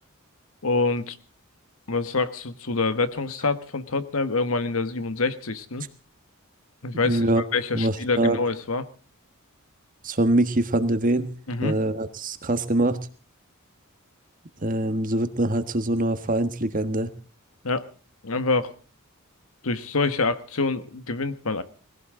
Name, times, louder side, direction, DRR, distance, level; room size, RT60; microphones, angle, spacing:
voice 1, 0.6-1.2 1.9-5.9 6.8-8.9 11.5-11.8 17.6-17.8 18.2-18.7 19.6-21.6, left 3 dB, 75° left, 12 dB, 1.3 m, -26 dB
voice 2, 7.0-7.4 7.7-8.4 10.0-11.3 11.6-13.0 14.6-17.1, right 1 dB, 40° right, 10 dB, 1.4 m, -23 dB
21.0 x 16.5 x 3.8 m, 0.38 s
head